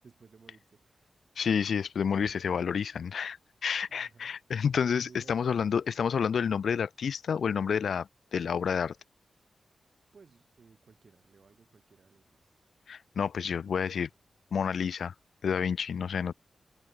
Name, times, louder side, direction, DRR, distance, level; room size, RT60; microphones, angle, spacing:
voice 1, 0.0-1.1 3.9-4.4 5.0-5.9 10.1-12.6, right 5 dB, 45° right, 6.1 m, -59 dB
voice 2, 1.4-8.9 12.9-14.1 14.5-15.1 15.4-16.3, left 7 dB, 75° left, 0.4 m, -29 dB
wide cardioid pair, 170°, 0 cm